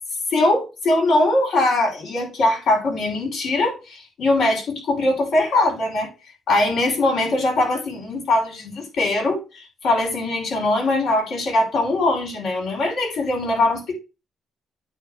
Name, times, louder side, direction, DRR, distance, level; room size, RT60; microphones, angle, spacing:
voice 1, 0.3-6.1 6.5-14.0, left 2 dB, 70° left, 5.6 m, -21 dB
9.1 x 3.5 x 6.5 m
cardioid pair, 115°, 0 cm